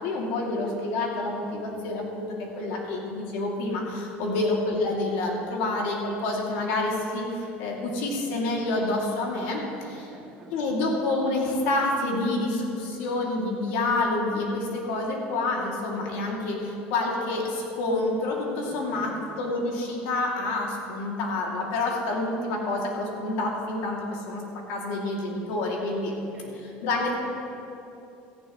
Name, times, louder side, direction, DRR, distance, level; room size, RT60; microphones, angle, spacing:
voice 1, 0.0-10.1 10.5-26.1 26.8-27.2, left 2 dB, 70° left, -2 dB, 2.9 m, -28 dB
voice 2, 10.0-10.5 18.6-19.1 26.1-26.5, right 3 dB, 25° right, -7 dB, 3.7 m, -49 dB
17.5 x 14.0 x 3.3 m, 2.8 s
cardioid pair, 180°, 4 cm